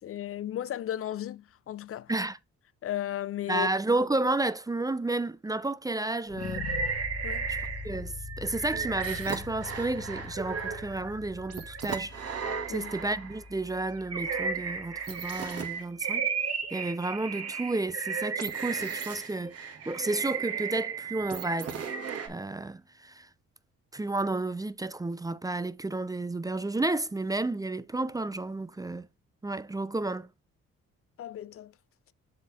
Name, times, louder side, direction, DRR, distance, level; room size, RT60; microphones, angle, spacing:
voice 1, 0.0-2.1 2.8-3.7 7.2-7.5 12.7-12.9 31.2-31.7, left 12 dB, 50° left, 0.5 m, -35 dB
voice 2, 3.5-6.7 7.5-12.2 12.7-16.3 16.7-21.8 22.3-23.3 23.9-29.1 29.4-30.3, right 2 dB, 10° right, 0.5 m, -31 dB
sound 1, 6.3-15.3, left 4 dB, 85° left, 1.9 m, -43 dB
sound 2, 6.4-8.0 8.3-13.4 13.9-22.3, right 6 dB, 55° right, 2.2 m, -34 dB
7.5 x 4.2 x 3.5 m
cardioid pair, 90°, 30 cm